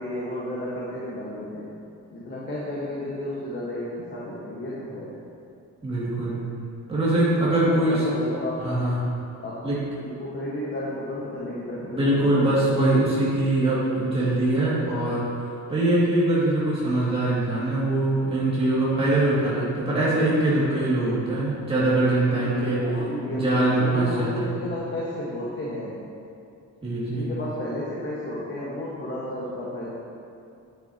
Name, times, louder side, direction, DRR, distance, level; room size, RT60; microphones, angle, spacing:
voice 1, 0.0-1.8 2.1-5.2 7.6-8.7 9.4-9.7 10.0-12.8 22.3-26.0 27.1-29.9, left 1 dB, 35° left, -7 dB, 1.5 m, -32 dB
voice 2, 5.8-6.4 6.9-8.0 8.6-9.0 9.6-9.8 11.9-15.2 15.7-22.8 23.3-24.5 26.8-27.3, right 2 dB, 20° right, -9 dB, 2.3 m, -22 dB
9.6 x 9.0 x 2.9 m, 2.5 s
cardioid pair, 145°, 31 cm